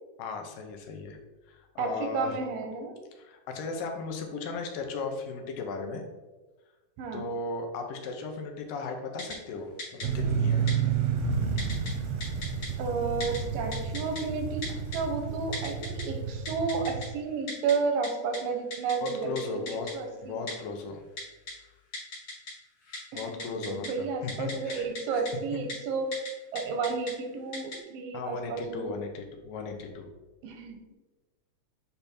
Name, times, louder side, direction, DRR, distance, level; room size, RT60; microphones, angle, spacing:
voice 1, 0.2-1.2 1.5-2.4 3.2-6.0 7.1-10.6 19.0-19.9 20.2-21.0 23.1-25.2 25.5-25.6 28.1-30.1, left 4 dB, 80° left, 3 dB, 2.6 m, -36 dB
voice 2, 1.8-3.0 7.0-7.2 12.8-14.7 14.9-19.6 19.9-20.5 23.1-26.2 26.5-28.9 30.4-30.8, right 4 dB, 85° right, 5 dB, 2.5 m, -32 dB
Typing, 9.2-9.4 9.8-10.1 10.7-10.8 11.6-11.9 12.2-12.7 13.2-13.4 13.7-14.2 14.6-15.0 15.5-16.0 16.5-17.1 17.5-17.7 18.0-18.1 18.3-18.4 18.7-19.1 19.4-19.5 19.7-19.9 20.5-20.6 21.2-21.5 21.9-22.5 22.8-23.9 24.3-25.0 25.3-25.4 25.7-25.8 26.1-26.3 26.6-27.1 27.5-27.8, left 2 dB, 55° left, 3.5 m, -37 dB
sound 1, 10.0-17.0, right 6 dB, 70° right, 1.6 m, -30 dB
8.5 x 3.5 x 4.2 m, 1.2 s
omnidirectional pair, 4.0 m